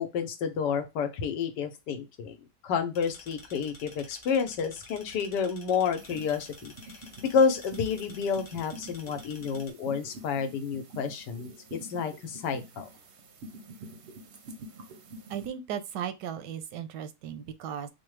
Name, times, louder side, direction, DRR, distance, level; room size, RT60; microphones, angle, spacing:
voice 1, 0.0-2.4 2.6-6.7 7.2-12.9, left 6 dB, 90° left, 1.3 m, -30 dB
sound 1, 2.9-9.7, left 2 dB, 50° left, 0.5 m, -51 dB
sound 2, 6.0-15.5, right 1 dB, 60° right, 0.7 m, -47 dB
voice 2, 15.3-17.9, right 9 dB, 85° right, 1.2 m, -36 dB
4.9 x 2.1 x 3.2 m
omnidirectional pair, 1.8 m